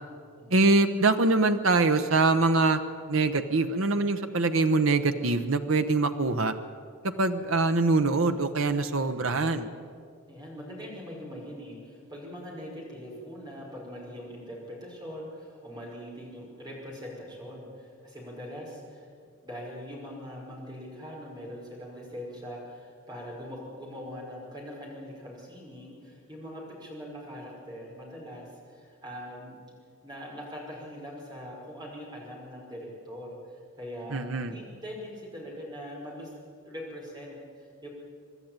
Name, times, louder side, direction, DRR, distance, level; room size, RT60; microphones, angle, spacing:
voice 1, 0.5-2.8 3.1-6.5 7.0-9.7 34.1-34.5, right 3 dB, 75° right, 8 dB, 1.0 m, -24 dB
voice 2, 10.3-19.1 19.4-29.6 30.0-36.3 36.6-37.9, equal, 20° right, -3 dB, 5.4 m, -42 dB
25.0 x 12.0 x 9.0 m, 2.3 s
head